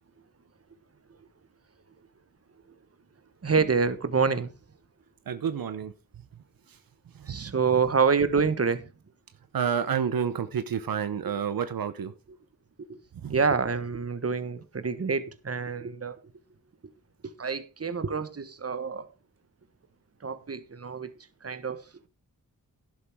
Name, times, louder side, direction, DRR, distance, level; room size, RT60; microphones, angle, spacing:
voice 1, 3.4-4.5 7.3-8.9 13.3-16.2 17.4-19.1 20.2-21.1 21.4-21.8, right 5 dB, 45° right, 1.4 m, -27 dB
voice 2, 5.3-6.4 6.7-6.8 7.1-7.6 9.5-12.1 13.1-13.4, right 7 dB, 85° right, 0.9 m, -30 dB
11.5 x 11.0 x 3.6 m
cardioid pair, 60°, 34 cm